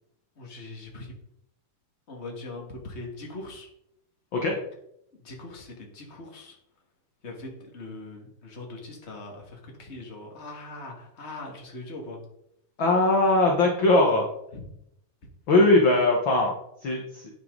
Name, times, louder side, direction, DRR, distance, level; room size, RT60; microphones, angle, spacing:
voice 1, 0.4-1.1 2.1-3.7 5.1-6.6 7.2-12.2 14.5-14.6, left 2 dB, 25° left, 0 dB, 2.2 m, -41 dB
voice 2, 12.8-14.2 15.5-16.5 16.8-17.3, left 2 dB, 45° left, 0 dB, 1.9 m, -20 dB
11.0 x 9.4 x 4.0 m, 0.77 s
omnidirectional pair, 3.6 m